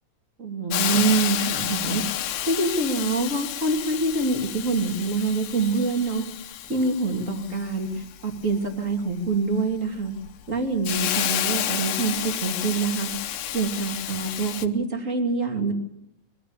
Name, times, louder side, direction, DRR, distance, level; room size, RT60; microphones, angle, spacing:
voice 1, 0.4-2.0 2.4-6.2 6.7-10.1 10.5-13.1 13.5-15.7, right 3 dB, 25° right, 4 dB, 2.7 m, -25 dB
Hiss, 0.7-14.7, left 12 dB, 90° left, 2.8 m, -31 dB
23.0 x 14.0 x 9.9 m, 0.79 s
omnidirectional pair, 3.9 m